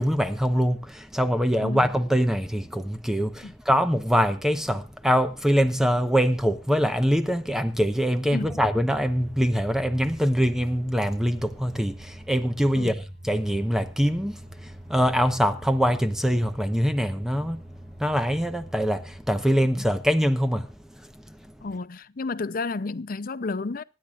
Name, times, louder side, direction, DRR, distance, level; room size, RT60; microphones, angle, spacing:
voice 1, 0.0-17.6 18.0-20.7, equal, 5° right, 0.9 m, -24 dB
voice 2, 8.3-8.6 12.8-12.9 21.6-23.8, left 3 dB, 50° left, 0.6 m, -31 dB
sound 1, 8.4-19.2, right 1 dB, 75° right, 5.1 m, -44 dB
25.5 x 10.5 x 2.4 m
head